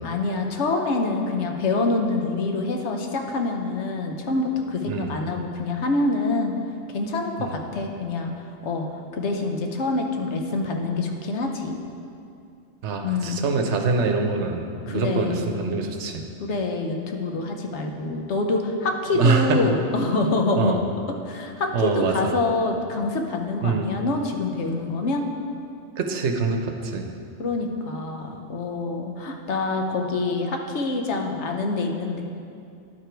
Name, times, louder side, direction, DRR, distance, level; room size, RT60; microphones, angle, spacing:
voice 1, 0.0-6.5 6.9-8.3 8.6-8.9 9.1-11.8 13.0-13.4 14.9-15.6 16.4-20.7 21.3-25.3 27.4-32.2, left 3 dB, 70° left, 3 dB, 1.1 m, -26 dB
voice 2, 4.9-5.2 7.4-7.5 12.8-16.2 19.1-19.6 20.6-20.8 21.7-22.3 23.6-23.9 26.0-27.1, right 4 dB, 75° right, 4 dB, 1.0 m, -24 dB
10.5 x 4.9 x 4.5 m, 2.5 s
omnidirectional pair, 1.2 m